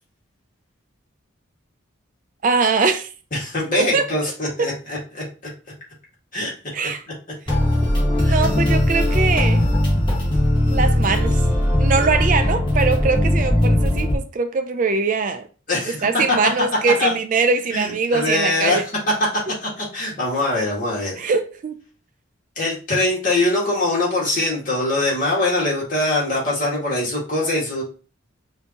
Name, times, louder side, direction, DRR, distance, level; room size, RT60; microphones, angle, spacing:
voice 1, 2.4-3.1 3.7-4.1 6.7-7.0 8.2-9.6 10.7-11.4 11.8-15.4 16.0-18.8 21.2-21.8, right 4 dB, 40° right, 0.4 m, -22 dB
voice 2, 3.3-5.2 6.3-6.5 8.2-8.4 15.7-16.1 17.0-17.2 17.7-18.9 19.6-21.1 22.6-27.8, left 2 dB, 40° left, 1.8 m, -23 dB
sound 1, 7.5-14.2, left 1 dB, 25° left, 1.5 m, -19 dB
5.3 x 2.7 x 2.8 m
head